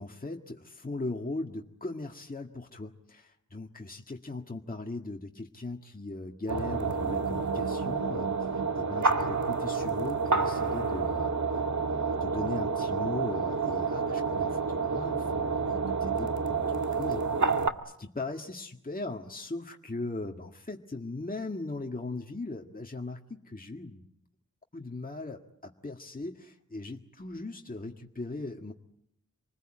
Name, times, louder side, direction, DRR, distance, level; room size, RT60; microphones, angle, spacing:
voice 1, 0.0-11.4 11.9-17.2 17.8-24.0 24.7-28.7, left 2 dB, 25° left, 2 dB, 1.8 m, -39 dB
sound 1, 6.5-17.7, right 4 dB, 65° right, 1.6 m, -29 dB
27.5 x 20.0 x 8.9 m, 0.75 s
wide cardioid pair, 60°, 32 cm